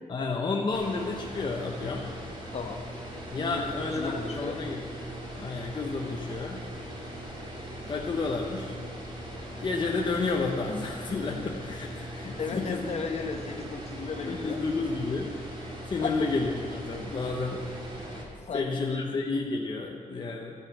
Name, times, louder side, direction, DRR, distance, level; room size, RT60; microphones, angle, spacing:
voice 1, 0.1-2.0 3.3-4.9 5.3-6.6 7.9-8.7 9.6-12.9 14.3-15.3 15.9-17.7 18.1-18.2 18.5-20.5, left 3 dB, 35° left, 0 dB, 0.8 m, -31 dB
sound 1, 0.7-18.2, equal, 35° right, 2.1 m, -40 dB
voice 2, 2.5-2.8 3.4-3.7 3.9-4.6 12.4-14.6 16.0-16.3 18.5-19.1, left 5 dB, 50° left, 4 dB, 1.1 m, -35 dB
13.5 x 5.6 x 8.0 m, 2.3 s
wide cardioid pair, 160°, 14 cm